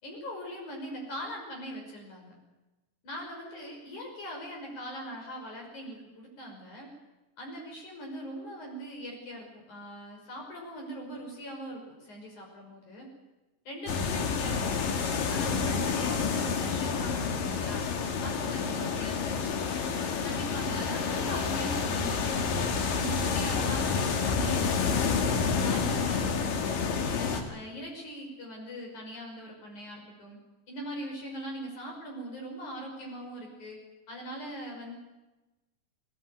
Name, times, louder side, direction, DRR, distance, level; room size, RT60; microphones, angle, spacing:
voice 1, 0.0-2.3 3.0-6.9 7.4-13.1 13.7-14.8 15.3-17.8 18.2-19.9 20.2-22.6 22.9-25.1 25.4-26.8 27.1-30.4 30.7-33.8 34.1-34.9, equal, 60° left, 0 dB, 7.3 m, -41 dB
sound 1, 13.9-27.4, left 5 dB, 85° left, 3.6 m, -29 dB
19.5 x 19.5 x 9.4 m, 1.1 s
omnidirectional pair, 3.8 m